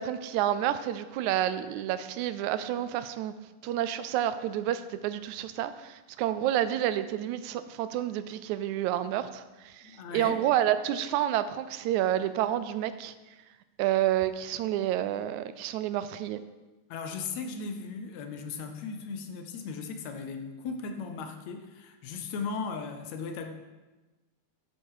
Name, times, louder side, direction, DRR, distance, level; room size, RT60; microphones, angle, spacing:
voice 1, 0.0-3.3 3.6-13.1 13.8-16.4, right 12 dB, 80° right, 13 dB, 1.9 m, -29 dB
voice 2, 9.8-10.4 16.9-23.5, left 5 dB, 75° left, 6 dB, 2.0 m, -37 dB
11.0 x 7.9 x 4.8 m, 1.1 s
omnidirectional pair, 3.4 m